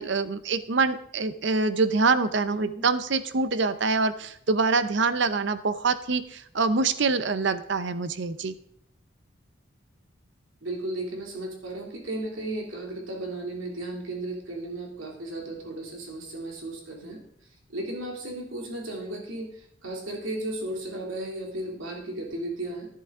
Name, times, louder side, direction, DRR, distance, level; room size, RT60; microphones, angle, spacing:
voice 1, 0.0-8.5, right 4 dB, 65° right, 13 dB, 0.6 m, -25 dB
voice 2, 2.5-2.8 10.6-17.2 17.7-22.9, right 1 dB, 85° right, 0 dB, 2.7 m, -35 dB
11.0 x 10.5 x 3.6 m, 0.68 s
head